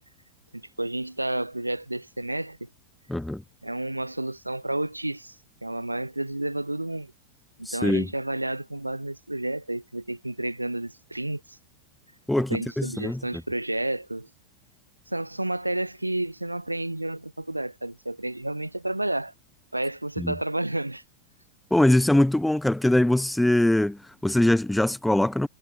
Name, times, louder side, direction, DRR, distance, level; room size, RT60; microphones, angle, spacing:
voice 1, 0.5-2.7 3.6-5.4 5.6-7.1 7.6-11.6 12.5-14.3 15.1-19.3 19.7-21.0, right 1 dB, 85° right, 1.4 m, -31 dB
voice 2, 3.1-3.4 7.7-8.1 12.3-13.2 20.2-20.3 21.7-25.5, left 1 dB, 5° left, 0.3 m, -22 dB
figure-of-eight pair, 90°, 0 cm